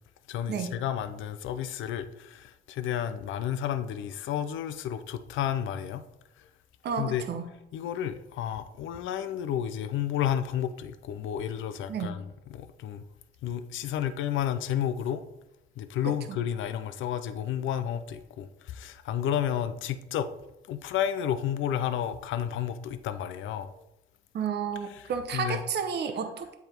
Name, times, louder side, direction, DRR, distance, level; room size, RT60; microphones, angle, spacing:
voice 1, 0.3-6.0 7.0-7.3 7.7-12.2 12.5-13.0 13.4-15.2 15.8-20.3 20.7-23.7 24.9-25.6, left 10 dB, 80° left, 0.5 m, -31 dB
voice 2, 6.8-7.5 11.9-12.2 16.0-16.1 24.3-26.5, right 6 dB, 55° right, 0.8 m, -31 dB
7.8 x 3.5 x 4.4 m
cardioid pair, 90°, 20 cm